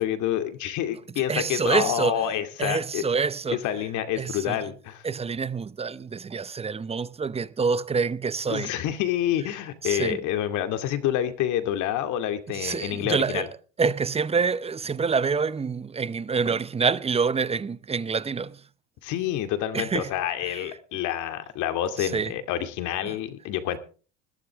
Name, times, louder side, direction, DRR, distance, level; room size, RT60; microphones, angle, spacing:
voice 1, 0.0-3.0 3.5-5.0 8.5-13.5 19.0-23.8, left 11 dB, 60° left, 2.4 m, -28 dB
voice 2, 1.3-2.2 2.6-3.6 4.2-4.6 5.0-8.7 9.8-10.2 12.5-13.5 13.8-18.5 19.7-20.1 20.5-20.6 22.0-22.3 23.0-23.2, right 5 dB, 20° right, 0.7 m, -26 dB
20.5 x 12.5 x 3.5 m
supercardioid pair, 95°, 33 cm